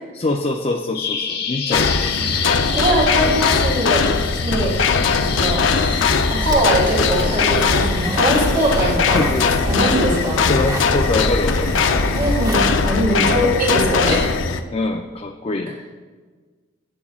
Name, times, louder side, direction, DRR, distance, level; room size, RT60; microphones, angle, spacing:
voice 1, 0.1-2.2 6.4-6.5 8.8-9.5 10.5-11.8 14.7-16.0, left 2 dB, 30° left, 3 dB, 0.5 m, -24 dB
Bird vocalization bird call bird song, 0.9-8.9, left 7 dB, 55° left, 1.0 m, -29 dB
sound 1, 1.7-14.6, left 5 dB, 85° left, 0.6 m, -20 dB
voice 2, 2.7-4.0 4.4-4.8 5.2-9.2 9.6-10.4 12.1-14.4, right 1 dB, 45° right, -2 dB, 2.5 m, -21 dB
sound 2, 6.4-13.0, equal, 20° right, 1.0 m, -28 dB
15.5 x 8.2 x 2.4 m, 1.4 s
head